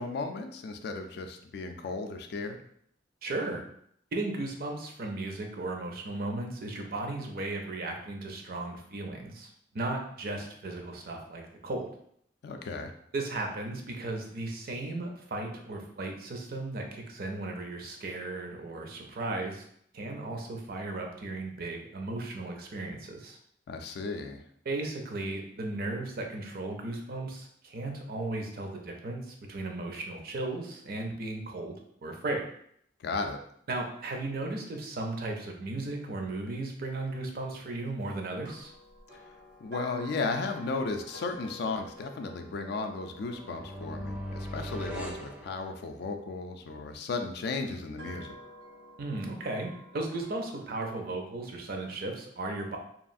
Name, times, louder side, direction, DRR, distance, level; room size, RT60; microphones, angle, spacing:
voice 1, 0.0-2.6 12.4-12.9 23.7-24.4 33.0-33.4 39.6-48.4, left 3 dB, 65° left, 6 dB, 0.3 m, -35 dB
voice 2, 3.2-3.6 4.1-11.9 13.1-19.6 19.9-23.4 24.6-31.8 32.0-32.4 33.7-38.7 49.0-52.8, right 2 dB, 55° right, 2 dB, 0.5 m, -36 dB
sound 1, 38.4-46.6 47.3-50.8, left 1 dB, 80° right, 1.0 m, -50 dB
sound 2, 43.2-46.2, equal, 5° right, 0.4 m, -40 dB
2.9 x 2.4 x 2.5 m, 0.68 s
head